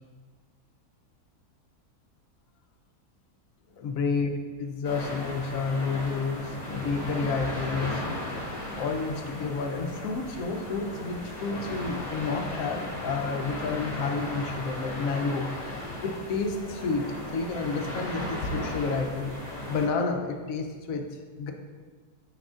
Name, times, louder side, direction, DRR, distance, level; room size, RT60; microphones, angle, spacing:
voice 1, 3.7-4.3 4.6-8.1 8.8-15.5 16.0-21.5, left 4 dB, 70° left, 4 dB, 1.0 m, -30 dB
sound 1, 4.8-19.9, left 1 dB, 20° left, 1.5 m, -36 dB
6.6 x 6.2 x 2.4 m, 1.4 s
omnidirectional pair, 1.6 m